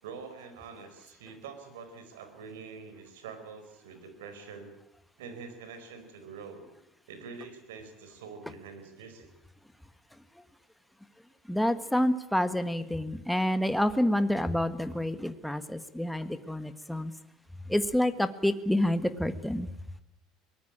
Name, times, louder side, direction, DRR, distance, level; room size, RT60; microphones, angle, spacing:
voice 1, 0.0-4.7 5.2-6.7 7.1-9.3, right 5 dB, 80° right, 9 dB, 4.6 m, -45 dB
voice 2, 11.5-17.1 17.7-19.7, left 1 dB, 5° left, 10 dB, 1.6 m, -28 dB
23.0 x 19.5 x 8.8 m, 0.83 s
hypercardioid pair, 70°, 0 cm